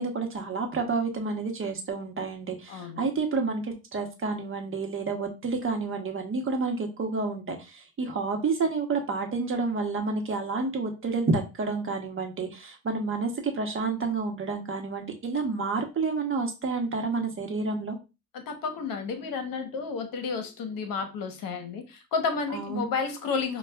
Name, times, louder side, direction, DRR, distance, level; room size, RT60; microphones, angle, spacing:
voice 1, 0.0-18.0 22.5-22.9, right 4 dB, 35° right, 3 dB, 1.0 m, -29 dB
voice 2, 2.7-3.0 18.3-23.6, left 5 dB, 60° left, 7 dB, 1.0 m, -31 dB
5.5 x 2.3 x 2.3 m, 0.28 s
supercardioid pair, 90°, 38 cm